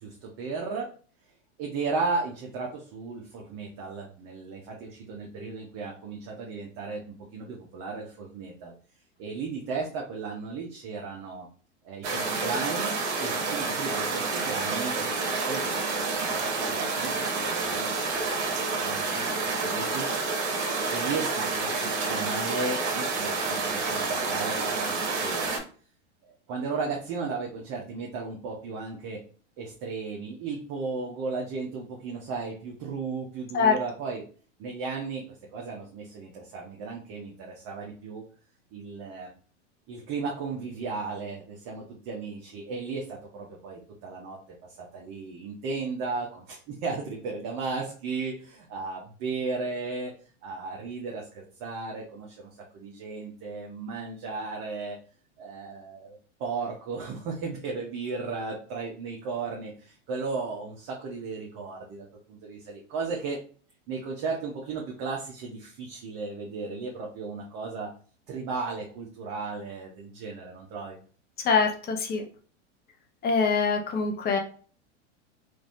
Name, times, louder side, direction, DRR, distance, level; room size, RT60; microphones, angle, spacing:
voice 1, 0.0-0.9 1.6-8.7 9.2-11.5 11.8-20.1 20.9-25.6 26.5-29.2 29.6-34.2 34.6-38.2 38.7-39.3 39.9-44.4 44.7-50.1 50.4-55.0 55.4-63.4 63.9-67.9 68.3-71.0, right 4 dB, 45° right, -1 dB, 0.9 m, -35 dB
sound 1, 12.0-25.6, right 4 dB, 65° right, 1.1 m, -29 dB
voice 2, 71.4-72.2 73.2-74.4, left 5 dB, 25° left, 3 dB, 0.7 m, -24 dB
3.1 x 2.6 x 2.6 m, 0.42 s
hypercardioid pair, 110°, 36 cm